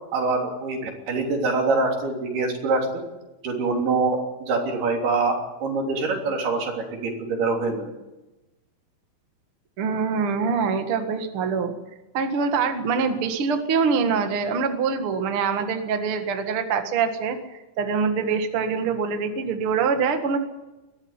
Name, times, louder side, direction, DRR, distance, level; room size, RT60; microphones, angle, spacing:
voice 1, 0.1-2.9 3.4-7.9, right 3 dB, 80° right, 1 dB, 5.4 m, -25 dB
voice 2, 9.8-11.7 12.1-20.4, right 5 dB, 45° right, 6 dB, 2.0 m, -24 dB
22.5 x 14.0 x 9.7 m, 1.0 s
omnidirectional pair, 4.5 m